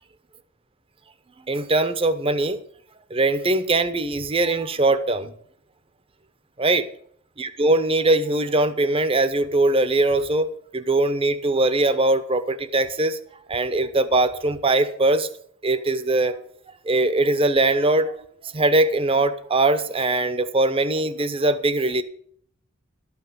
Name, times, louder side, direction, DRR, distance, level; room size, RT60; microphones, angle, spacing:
voice 1, 1.5-2.6 3.1-5.3 6.6-6.8 7.4-10.5 10.7-13.2 13.5-15.3 15.6-16.4 16.8-18.1 18.4-22.0, right 2 dB, 25° right, 12 dB, 0.8 m, -21 dB
12.5 x 5.9 x 8.0 m, 0.64 s
head